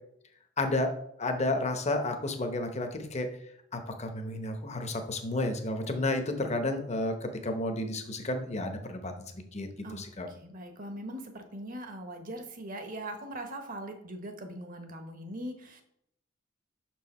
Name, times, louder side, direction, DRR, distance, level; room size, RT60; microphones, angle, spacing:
voice 1, 0.6-0.9 1.2-3.3 3.7-10.3, left 2 dB, 35° left, 6 dB, 0.8 m, -32 dB
voice 2, 9.8-15.8, right 1 dB, 45° right, 6 dB, 1.0 m, -41 dB
6.1 x 4.7 x 4.2 m, 0.72 s
head